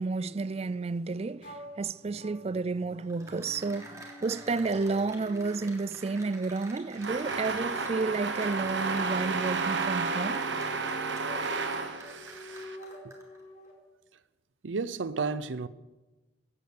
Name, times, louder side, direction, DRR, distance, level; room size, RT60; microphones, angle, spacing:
voice 1, 0.0-10.4, right 3 dB, 35° right, 0.4 m, -31 dB
sound 1, 1.4-13.7, left 2 dB, 45° left, 4.1 m, -48 dB
Cheering / Applause, 3.0-13.4, right 2 dB, 15° right, 3.2 m, -49 dB
sound 2, 7.0-12.8, right 4 dB, 70° right, 1.4 m, -32 dB
voice 2, 12.1-12.6 13.0-13.1 14.6-15.7, right 4 dB, 85° right, 0.7 m, -33 dB
16.0 x 9.4 x 8.6 m
head